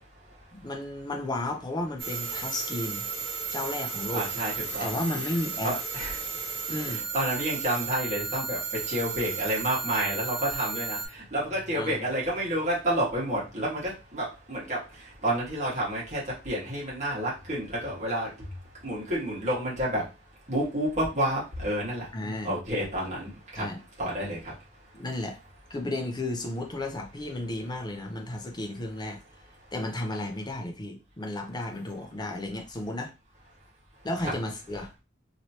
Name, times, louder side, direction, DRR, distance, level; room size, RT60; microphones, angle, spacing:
voice 1, 0.5-3.1 3.5-4.3 4.8-5.7 6.7-7.0 11.7-12.0 22.1-22.6 23.6-23.8 24.9-25.4 25.7-29.2 29.7-33.1 34.0-34.9, left 1 dB, 20° left, 0.6 m, -33 dB
sound 1, 2.0-11.1, right 5 dB, 55° right, 1.0 m, -34 dB
voice 2, 4.1-4.9 5.2-5.3 5.6-6.2 6.9-8.6 8.9-11.0 11.3-14.8 15.2-18.3 18.8-20.0 20.5-22.1 22.4-23.6 24.0-24.5 34.2-34.3, right 1 dB, 35° right, 1.6 m, -29 dB
3.0 x 2.9 x 2.8 m
head